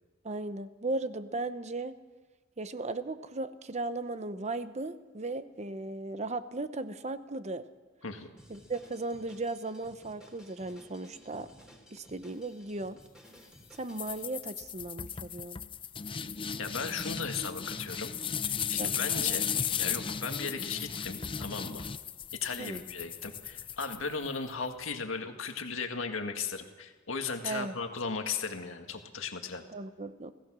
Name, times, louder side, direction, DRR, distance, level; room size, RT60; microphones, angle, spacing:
voice 1, 0.2-2.0 2.6-7.7 8.5-11.5 11.9-13.0 13.8-15.6 18.7-19.4 22.6-22.8 27.4-27.8 29.7-30.3, right 2 dB, 35° right, 11 dB, 0.9 m, -36 dB
Drum kit, 8.4-14.2, equal, 5° right, 3.6 m, -56 dB
sound 1, 14.0-24.5, left 7 dB, 25° left, 0.5 m, -35 dB
voice 2, 16.6-18.1 18.7-19.5 19.8-21.8 22.4-29.6, left 5 dB, 80° left, 5 dB, 1.8 m, -36 dB
25.0 x 16.5 x 6.2 m, 1.3 s
head